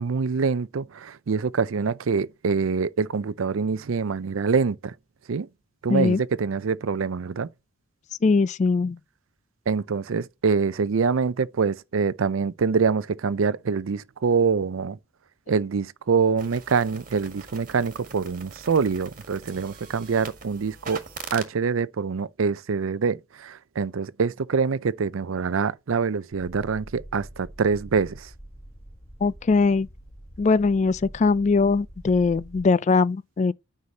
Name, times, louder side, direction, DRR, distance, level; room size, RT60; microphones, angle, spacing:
voice 1, 0.0-4.9 5.3-5.5 5.8-7.5 9.7-15.0 15.5-21.0 21.3-28.3, right 5 dB, 80° right, 0.5 m, -25 dB
voice 2, 5.9-6.2 8.2-9.0 29.2-29.9 30.4-33.5, left 4 dB, 35° left, 0.3 m, -21 dB
sound 1, 16.4-21.5, right 5 dB, 40° right, 1.7 m, -42 dB
sound 2, 26.3-32.6, right 1 dB, 10° left, 1.1 m, -45 dB
9.6 x 5.7 x 2.8 m
head